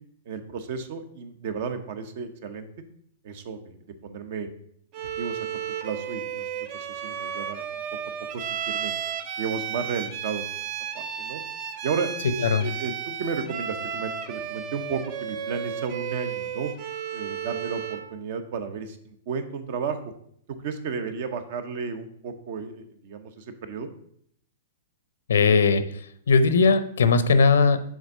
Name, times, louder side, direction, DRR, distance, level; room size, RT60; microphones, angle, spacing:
voice 1, 0.3-2.7 3.2-4.5 5.2-7.8 8.3-8.9 9.4-10.4 10.9-11.4 11.8-12.1 12.6-16.7 17.1-20.0 20.5-23.9, right 5 dB, 55° right, 9 dB, 0.9 m, -33 dB
Bowed string instrument, 4.9-18.1, right 8 dB, 40° right, 0.5 m, -33 dB
voice 2, 12.2-12.7 25.3-27.8, left 4 dB, 90° left, 11 dB, 0.6 m, -20 dB
6.4 x 3.6 x 5.4 m, 0.66 s
hypercardioid pair, 145°, 0 cm